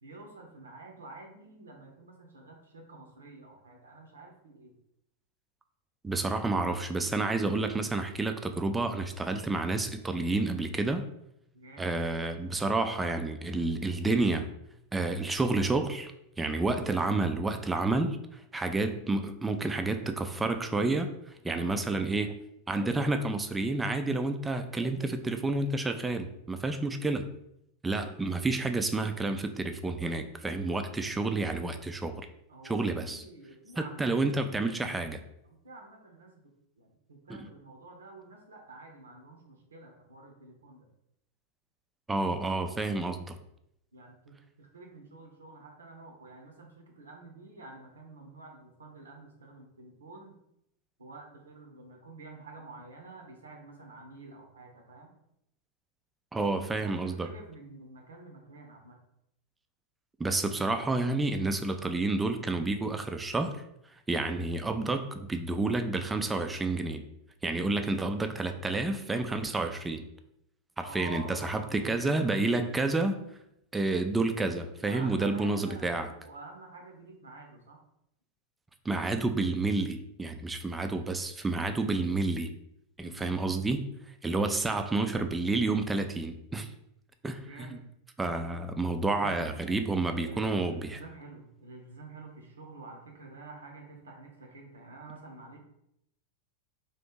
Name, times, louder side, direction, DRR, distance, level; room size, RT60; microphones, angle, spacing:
voice 1, 0.0-4.8 11.5-11.9 21.4-21.8 32.5-35.0 35.4-36.4 36.8-40.9 43.9-50.4 51.0-55.1 56.8-59.0 70.8-72.3 74.8-77.8 83.0-83.5 87.4-87.9 89.0-89.5 90.1-95.6, right 2 dB, 70° right, 2 dB, 0.6 m, -49 dB
voice 2, 6.0-11.1 11.8-14.5 14.9-16.1 16.4-21.1 21.4-22.3 22.7-27.3 27.8-32.3 32.6-33.2 33.8-35.2 37.3-37.5 42.1-43.4 56.3-57.3 60.2-63.6 64.1-67.0 67.4-70.1 70.8-73.2 73.7-76.1 78.9-82.5 83.0-83.8 84.2-86.7 87.2-87.8 88.2-91.0, right 2 dB, 10° right, 7 dB, 0.3 m, -30 dB
2.9 x 2.7 x 3.7 m, 0.78 s
figure-of-eight pair, 90°, 0 cm